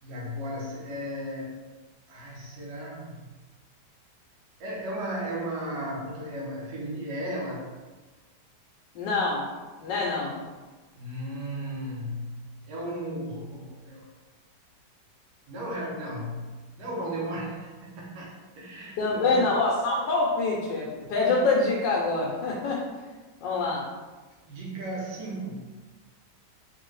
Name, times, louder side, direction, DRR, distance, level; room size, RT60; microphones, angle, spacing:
voice 1, 0.0-1.5 2.1-3.3 4.6-7.7 11.0-14.1 15.5-19.5 24.4-25.7, right 1 dB, 75° right, -3 dB, 1.3 m, -35 dB
voice 2, 8.9-9.5 9.8-10.4 19.0-22.8 23.4-23.8, left 3 dB, 90° left, -3 dB, 1.3 m, -25 dB
3.9 x 2.6 x 3.1 m, 1.3 s
omnidirectional pair, 1.9 m